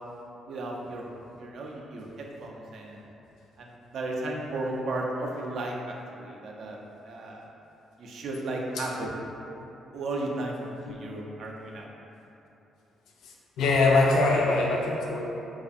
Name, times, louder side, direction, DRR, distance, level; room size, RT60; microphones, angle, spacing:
voice 1, 0.5-1.0 1.4-3.0 3.6-6.8 7.0-7.5 8.0-9.1 9.9-11.9, right 2 dB, 65° right, -1 dB, 0.3 m, -34 dB
voice 2, 8.8-9.1 10.8-10.9 13.2-15.2, left 3 dB, 85° left, -1 dB, 0.3 m, -24 dB
2.6 x 2.3 x 2.4 m, 2.9 s
cardioid pair, 90°, 0 cm